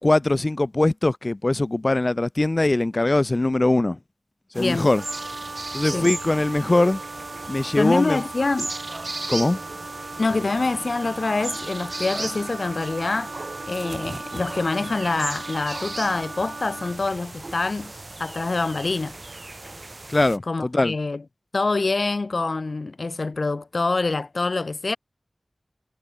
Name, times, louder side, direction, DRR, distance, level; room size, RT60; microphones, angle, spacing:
voice 1, 0.0-4.0 4.5-5.0 5.7-7.0 7.5-8.2 9.3-9.6 20.1-20.9, left 2 dB, 45° left, 2.0 m, -21 dB
sound 1, 4.5-20.4, right 2 dB, 55° right, 5.1 m, -36 dB
voice 2, 4.6-4.9 5.9-6.1 7.7-8.7 10.2-13.3 13.7-17.9 18.2-19.2 20.5-21.2 21.5-25.0, left 3 dB, 80° left, 1.4 m, -25 dB
Wind instrument woodwind instrument, 5.0-17.0, right 3 dB, 75° right, 3.9 m, -38 dB
wide cardioid pair, 50°, 0 cm